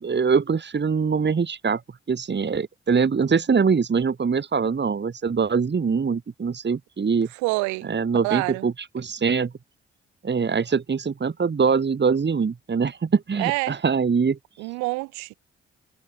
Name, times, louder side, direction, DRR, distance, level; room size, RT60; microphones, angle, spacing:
voice 1, 0.0-1.8 2.1-7.3 7.9-9.5 10.2-14.4, right 5 dB, 35° right, 2.6 m, -23 dB
voice 2, 7.3-7.9 8.2-8.7 13.4-13.8 14.6-15.3, right 26 dB, 75° right, 6.1 m, -27 dB
hypercardioid pair, 40°, 29 cm